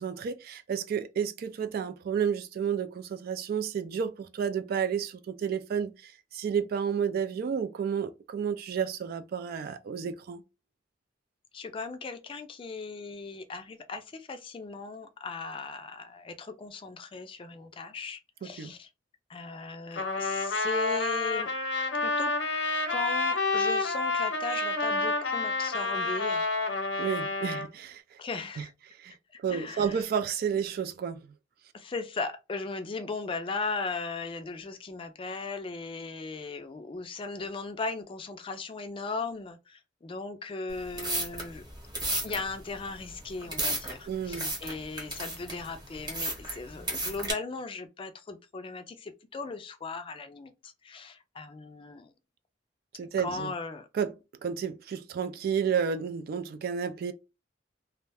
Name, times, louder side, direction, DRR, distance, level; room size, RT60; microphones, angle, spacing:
voice 1, 0.0-10.4 18.4-18.7 27.0-28.0 28.6-28.7 29.0-29.1 29.4-31.2 44.1-44.5 53.0-53.5 53.9-54.1 54.4-57.1, right 7 dB, 55° right, 0.3 m, -31 dB
voice 2, 11.5-18.9 19.3-21.5 21.9-22.3 22.9-26.5 28.2-28.7 29.5-30.0 31.7-41.6 42.1-52.1 53.2-53.9, left 4 dB, 30° left, 0.4 m, -37 dB
Trumpet, 20.0-27.7, left 3 dB, 90° left, 0.7 m, -29 dB
sound 1, 40.7-47.3, right 1 dB, 25° right, 1.0 m, -34 dB
2.3 x 2.1 x 3.3 m
head